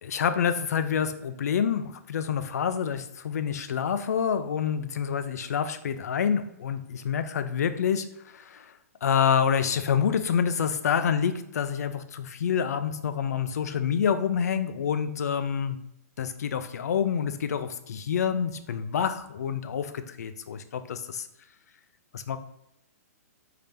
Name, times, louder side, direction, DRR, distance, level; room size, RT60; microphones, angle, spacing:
voice 1, 0.0-8.1 8.3-8.7 9.0-15.8 16.2-21.3 22.1-22.4, left 7 dB, 75° left, 10 dB, 0.4 m, -27 dB
3.4 x 2.8 x 3.5 m, 0.79 s
hypercardioid pair, 140°, 9 cm